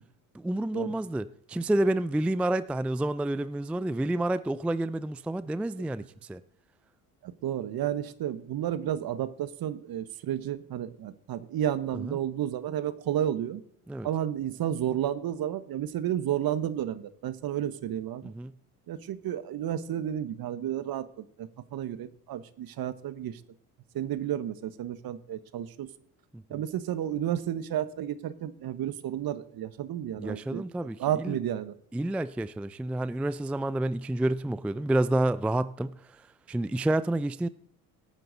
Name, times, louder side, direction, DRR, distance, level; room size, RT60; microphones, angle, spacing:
voice 1, 0.3-6.4 12.0-12.2 13.9-14.1 18.2-18.5 26.3-26.6 30.2-31.4 31.9-37.5, right 1 dB, 5° right, 0.4 m, -29 dB
voice 2, 7.2-13.6 14.0-18.3 18.9-23.4 23.9-25.9 26.5-31.7, right 11 dB, 55° right, 1.2 m, -32 dB
17.5 x 9.1 x 4.0 m
hypercardioid pair, 65°, 44 cm